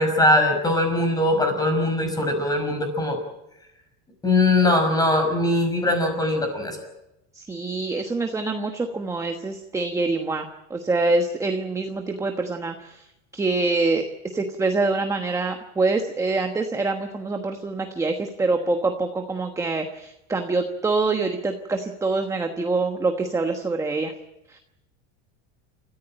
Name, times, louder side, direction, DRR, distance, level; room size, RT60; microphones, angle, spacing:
voice 1, 0.0-3.2 4.2-6.8, left 1 dB, 10° left, 5 dB, 5.6 m, -21 dB
voice 2, 7.3-13.0 13.3-24.1 24.5-24.6, right 3 dB, 10° right, 5 dB, 1.2 m, -25 dB
29.0 x 14.5 x 8.9 m, 0.90 s
cardioid pair, 160°, 34 cm